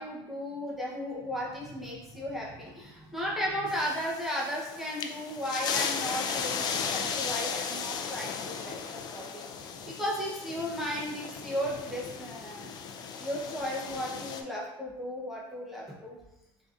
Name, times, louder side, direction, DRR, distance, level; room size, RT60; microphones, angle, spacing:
voice 1, 0.0-12.7 13.2-16.2, equal, ahead, -5 dB, 0.7 m, -35 dB
sound 1, 3.7-14.4, left 6 dB, 45° left, 0.4 m, -36 dB
6.0 x 2.7 x 2.4 m, 0.91 s
cardioid pair, 140°, 10 cm